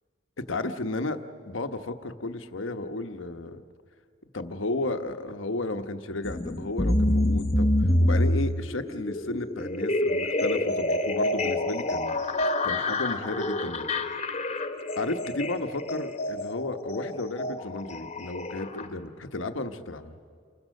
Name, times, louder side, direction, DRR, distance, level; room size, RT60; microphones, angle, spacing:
voice 1, 0.4-3.6 4.3-12.1 12.6-13.9 15.0-20.2, left 2 dB, 85° left, 8 dB, 1.2 m, -33 dB
sound 1, 6.2-18.9, left 1 dB, 35° left, 1.3 m, -27 dB
29.0 x 22.5 x 6.5 m, 2.2 s
head